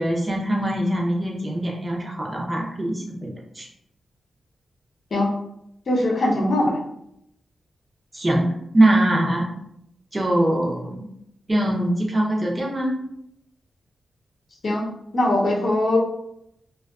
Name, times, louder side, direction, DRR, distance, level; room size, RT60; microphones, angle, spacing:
voice 1, 0.0-3.3 3.6-3.7 8.1-8.5 8.7-9.5 10.1-11.1 11.5-12.9, right 1 dB, 25° right, -1 dB, 0.6 m, -22 dB
voice 2, 5.9-6.8 14.6-14.9 15.1-16.0, left 1 dB, 55° left, -2 dB, 0.7 m, -21 dB
2.4 x 2.3 x 2.4 m, 0.76 s
wide cardioid pair, 105°, 0 cm